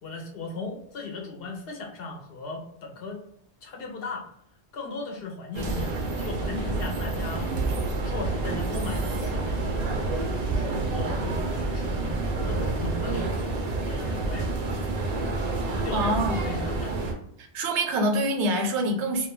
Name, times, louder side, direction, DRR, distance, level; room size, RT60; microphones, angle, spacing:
voice 1, 0.0-3.2 3.6-4.3 4.7-7.6 8.0-9.9 10.4-14.9 15.3-17.0, left 3 dB, 65° left, 1 dB, 0.7 m, -37 dB
sound 1, 5.5-17.1, right 2 dB, 55° right, 0.5 m, -28 dB
voice 2, 15.9-16.4 17.4-19.3, right 1 dB, 85° right, 3 dB, 0.9 m, -25 dB
2.3 x 2.2 x 2.9 m, 0.73 s
omnidirectional pair, 1.1 m